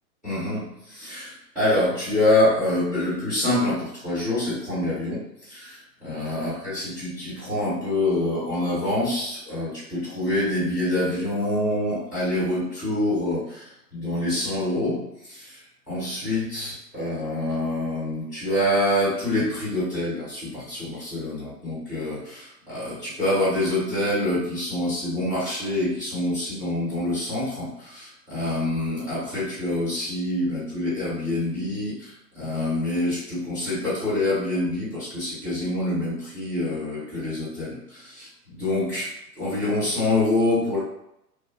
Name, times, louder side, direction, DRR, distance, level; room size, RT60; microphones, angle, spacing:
voice 1, 0.2-15.6 15.9-40.8, left 1 dB, ahead, -14 dB, 0.4 m, -26 dB
2.8 x 2.1 x 2.7 m, 0.82 s
figure-of-eight pair, 110°, 48 cm